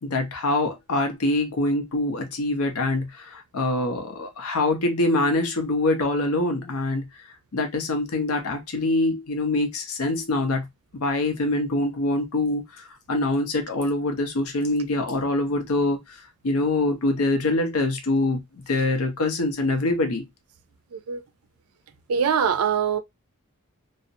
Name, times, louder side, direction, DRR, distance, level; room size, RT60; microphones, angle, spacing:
voice 1, 0.0-7.1 7.5-10.7 10.9-12.6 13.1-16.0 16.4-20.2, left 2 dB, 80° left, 0.6 m, -24 dB
voice 2, 20.9-21.2 22.1-23.0, right 7 dB, 75° right, 0.4 m, -23 dB
2.4 x 2.0 x 2.6 m
head